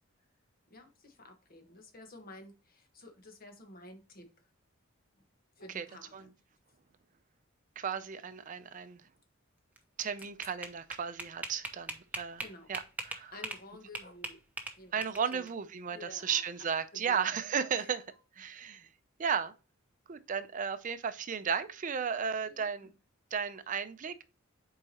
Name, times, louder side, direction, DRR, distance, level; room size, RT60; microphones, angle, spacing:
voice 1, 0.7-4.3 5.6-6.3 10.2-10.3 12.4-12.7 13.3-14.4 14.8-15.0 15.3-15.5 15.9-16.4 16.9-17.3 17.7-17.9 22.5-22.9, left 1 dB, 45° left, 1.3 m, -51 dB
voice 2, 7.8-9.0 10.0-12.4 12.7-12.8 13.1-13.3 14.9-18.0 18.4-18.9 19.2-19.5 20.1-22.9 23.3-24.2, right 7 dB, 40° right, 0.4 m, -34 dB
sound 1, 9.8-13.6 13.9-15.5, right 2 dB, 10° right, 0.9 m, -40 dB
8.0 x 4.7 x 2.9 m
head